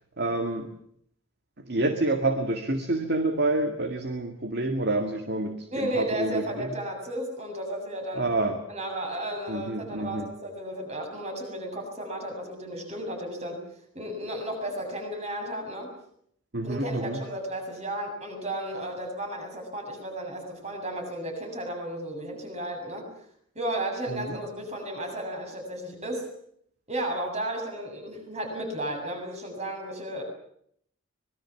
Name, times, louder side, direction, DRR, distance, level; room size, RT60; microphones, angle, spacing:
voice 1, 0.2-0.7 1.6-6.8 8.2-8.6 9.5-10.3 16.5-17.2 24.1-24.4, right 2 dB, 50° right, 7 dB, 2.0 m, -28 dB
voice 2, 5.7-8.2 8.7-13.6 13.9-15.9 16.6-23.0 23.6-26.3 26.9-30.2, right 1 dB, 30° right, 3 dB, 7.3 m, -33 dB
25.0 x 21.5 x 7.2 m, 0.67 s
head